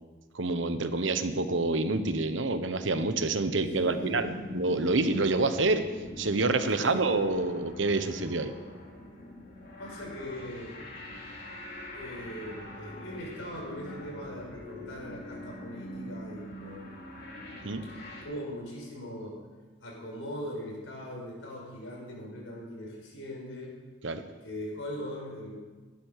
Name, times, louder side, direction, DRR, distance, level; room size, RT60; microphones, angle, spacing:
voice 1, 0.3-5.8 6.2-8.5 17.6-17.8 24.0-24.2, right 3 dB, 75° right, 9 dB, 1.1 m, -27 dB
sound 1, 3.2-18.2, left 1 dB, 55° left, 3.7 m, -43 dB
voice 2, 3.8-4.4 6.8-7.0 9.8-10.7 11.9-16.9 18.2-19.4 19.8-23.8 24.4-25.6, equal, 90° left, -2 dB, 5.7 m, -40 dB
15.0 x 11.5 x 6.7 m, 1.4 s
head